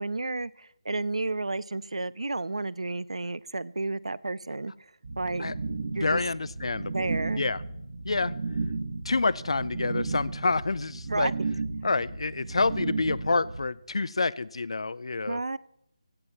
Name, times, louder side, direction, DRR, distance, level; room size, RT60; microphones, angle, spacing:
voice 1, 0.0-4.7 5.2-5.5 5.9-6.2 6.9-7.4 11.1-11.3 15.3-15.6, right 2 dB, 80° right, 22 dB, 0.4 m, -31 dB
sound 1, 5.0-13.6, right 3 dB, 50° right, 1.4 m, -34 dB
voice 2, 6.0-7.1 7.4-7.6 8.0-8.3 9.1-11.3 11.8-15.4, left 3 dB, 65° left, 21 dB, 0.4 m, -28 dB
16.5 x 7.9 x 4.2 m, 0.78 s
figure-of-eight pair, 155°, 3 cm